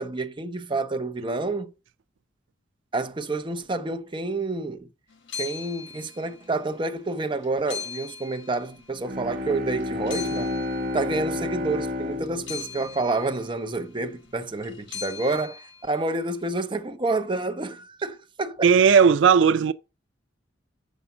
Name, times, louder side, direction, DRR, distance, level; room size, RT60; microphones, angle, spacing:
voice 1, 0.0-1.7 2.9-4.9 5.3-10.5 10.9-18.7, right 3 dB, 25° right, 0.7 m, -29 dB
sound 1, 5.1-6.8 7.1-9.4 9.8-16.3, left 7 dB, 85° left, 1.3 m, -41 dB
Bowed string instrument, 8.9-13.8, left 2 dB, 50° right, 1.2 m, -31 dB
voice 2, 18.6-19.7, right 6 dB, 85° right, 0.4 m, -16 dB
7.2 x 5.0 x 5.5 m
head